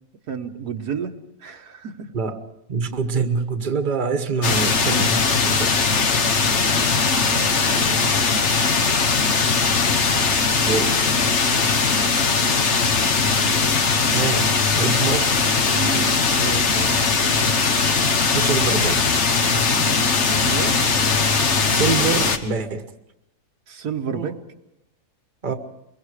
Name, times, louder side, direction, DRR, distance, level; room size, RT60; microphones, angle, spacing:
voice 1, 0.3-1.1 1.4-2.1 7.1-8.0 15.7-17.0 20.4-20.8 23.7-24.4, right 6 dB, 85° right, 1.8 m, -31 dB
voice 2, 2.7-5.8 10.6-10.9 11.5-11.7 14.1-15.4 18.3-19.0 19.7-19.9 21.7-22.9 24.0-24.3 25.4-25.5, right 4 dB, 35° right, 1.3 m, -25 dB
sound 1, 4.4-22.4, left 4 dB, 50° left, 1.5 m, -20 dB
24.0 x 22.5 x 4.9 m
omnidirectional pair, 1.6 m